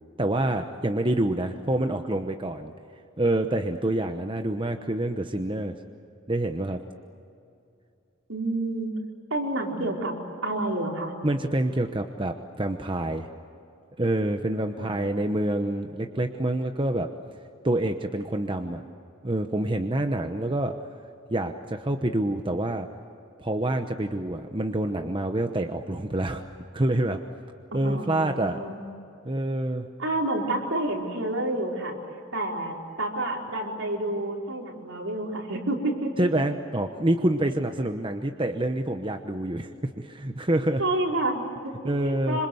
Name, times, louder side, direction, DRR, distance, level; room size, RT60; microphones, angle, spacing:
voice 1, 0.2-2.7 3.2-5.8 6.3-6.8 11.2-13.3 14.0-17.1 17.6-18.8 19.2-20.8 21.3-22.9 23.4-26.4 26.7-27.2 27.7-28.6 29.2-29.9 36.2-40.8 41.8-42.4, right 1 dB, 25° right, 5 dB, 1.0 m, -27 dB
voice 2, 8.3-8.9 9.3-10.1 10.4-11.1 14.8-15.1 27.7-28.9 30.0-32.0 32.3-36.1 40.8-41.7 42.0-42.5, right 1 dB, 70° right, 0 dB, 4.7 m, -29 dB
26.5 x 26.5 x 8.0 m, 2.6 s
head